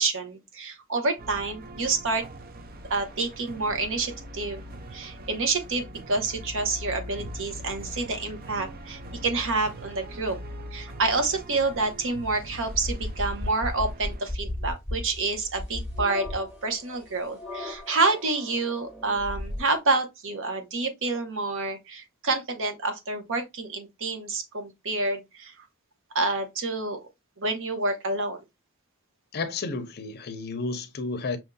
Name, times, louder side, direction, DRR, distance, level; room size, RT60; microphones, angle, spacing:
voice 1, 0.0-2.3 2.9-4.6 4.9-10.4 10.7-25.7 26.1-27.0 27.4-28.4, right 3 dB, 60° right, 0.9 m, -28 dB
sound 1, 1.2-14.3, equal, 40° right, 0.5 m, -42 dB
sound 2, 11.8-11.9 12.7-19.8, left 1 dB, 5° right, 1.4 m, -35 dB
voice 2, 29.3-31.4, left 3 dB, 45° left, 0.6 m, -32 dB
5.8 x 2.6 x 2.2 m
head